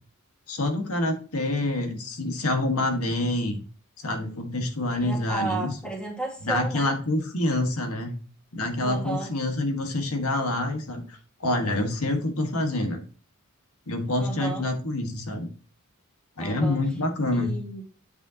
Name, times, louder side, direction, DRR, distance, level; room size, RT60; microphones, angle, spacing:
voice 1, 0.5-3.6 4.0-5.8 6.4-8.1 8.5-13.0 13.9-15.5 16.4-17.5, left 2 dB, 80° left, 4 dB, 1.6 m, -27 dB
voice 2, 4.9-7.0 8.8-9.3 14.2-14.7 16.4-16.8 17.3-17.8, right 3 dB, 5° left, 0 dB, 1.8 m, -33 dB
8.4 x 6.6 x 2.9 m, 0.37 s
head